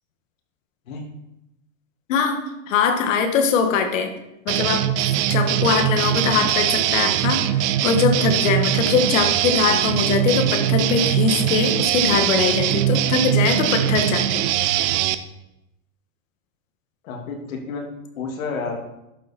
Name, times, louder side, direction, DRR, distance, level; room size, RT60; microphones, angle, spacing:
voice 1, 2.1-4.1 4.5-14.4, left 6 dB, 70° left, 6 dB, 2.0 m, -22 dB
sound 1, 4.5-15.2, right 12 dB, 65° right, 0.9 m, -21 dB
voice 2, 17.0-17.9 18.2-18.9, left 4 dB, 90° left, 1 dB, 2.8 m, -30 dB
11.5 x 7.2 x 4.5 m, 0.88 s
supercardioid pair, 150°, 40 cm